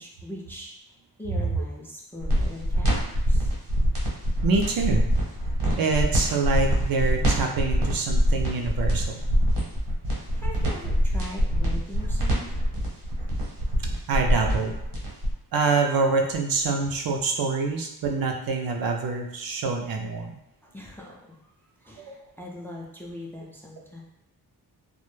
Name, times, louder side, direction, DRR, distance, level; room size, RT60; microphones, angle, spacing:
voice 1, 0.0-3.5 10.1-12.5 20.6-21.5 21.8-24.0, left 1 dB, 5° left, -3 dB, 0.4 m, -41 dB
sound 1, 2.2-15.3, equal, 85° right, 1.0 m, -24 dB
voice 2, 4.4-5.0 5.8-9.2 14.1-14.7 15.5-20.4 22.0-22.2, right 4 dB, 60° right, 3 dB, 0.5 m, -26 dB
2.1 x 2.0 x 3.0 m, 0.85 s
cardioid pair, 85°, 40 cm